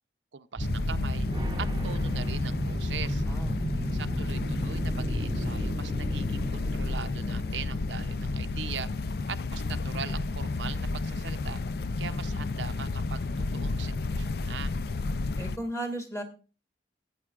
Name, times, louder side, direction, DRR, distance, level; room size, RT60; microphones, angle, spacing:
voice 1, 0.3-1.3 1.6-3.2 3.9-8.9 9.3-11.6 12.0-14.7, right 6 dB, 85° right, 9 dB, 0.6 m, -41 dB
sound 1, 0.6-15.6, left 3 dB, 60° left, 0.5 m, -31 dB
sound 2, 0.6-8.3, right 1 dB, 25° right, 0.7 m, -34 dB
voice 2, 3.3-4.1 15.4-16.2, right 1 dB, 15° left, 4 dB, 2.1 m, -36 dB
16.0 x 8.9 x 2.4 m, 0.34 s
head